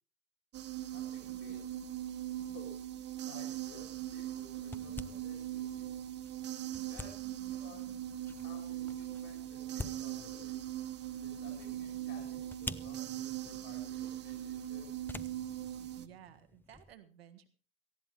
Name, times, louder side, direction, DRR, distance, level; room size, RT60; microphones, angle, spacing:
sound 1, 0.5-16.1, right 12 dB, 35° right, 1.0 m, -40 dB
voice 1, 0.8-1.8 2.4-2.8 3.3-5.9 6.9-7.1 7.4-7.8 8.4-10.6 11.2-14.9, left 5 dB, 70° left, -3 dB, 6.0 m, -56 dB
sound 2, 3.4-16.9, left 2 dB, 5° left, 0.6 m, -50 dB
voice 2, 15.8-17.5, right 11 dB, 80° right, 8 dB, 1.7 m, -56 dB
18.5 x 14.5 x 3.3 m, 0.35 s
figure-of-eight pair, 75°, 30 cm